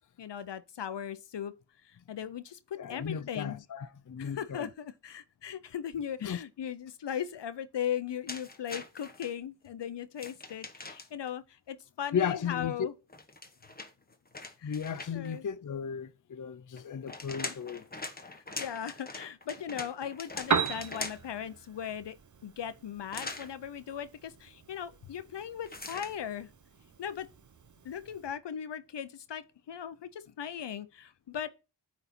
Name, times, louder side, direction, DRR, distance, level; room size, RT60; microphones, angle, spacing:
voice 1, 0.2-1.5 1.8-3.6 4.2-12.9 14.6-14.8 15.1-15.5 18.3-22.1 22.4-26.5 27.0-27.3 27.8-31.5, left 9 dB, 85° left, 0.7 m, -38 dB
voice 2, 2.7-4.7 6.2-6.4 12.1-12.7 14.6-17.9, left 7 dB, 50° left, 0.6 m, -35 dB
sound 1, 8.3-9.3 10.2-11.3 13.1-15.4 16.8-21.4 23.1-23.5 25.7-26.2, left 3 dB, 20° left, 1.0 m, -42 dB
Piano, 20.2-28.3, right 6 dB, 45° right, 0.8 m, -38 dB
9.1 x 4.2 x 4.2 m
wide cardioid pair, 100°, 41 cm